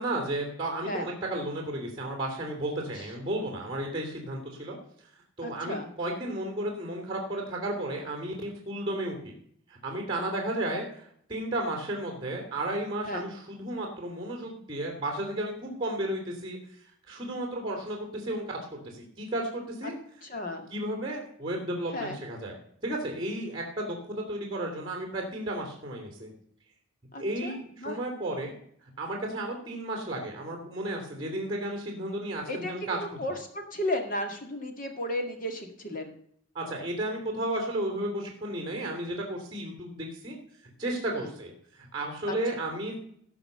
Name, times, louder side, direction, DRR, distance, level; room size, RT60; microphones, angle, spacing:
voice 1, 0.0-4.8 5.4-9.3 9.7-16.6 17.1-18.4 18.8-19.9 20.7-22.6 22.8-26.3 27.2-28.6 29.0-33.4 36.5-40.4 40.8-43.0, right 1 dB, 25° right, 1 dB, 3.1 m, -33 dB
voice 2, 5.4-5.9 13.1-13.2 19.8-19.9 20.2-20.7 21.9-22.2 27.1-28.0 32.5-36.1 41.2-41.3 42.3-42.4, left 1 dB, 40° left, 4 dB, 2.1 m, -34 dB
17.5 x 5.9 x 6.7 m, 0.65 s
head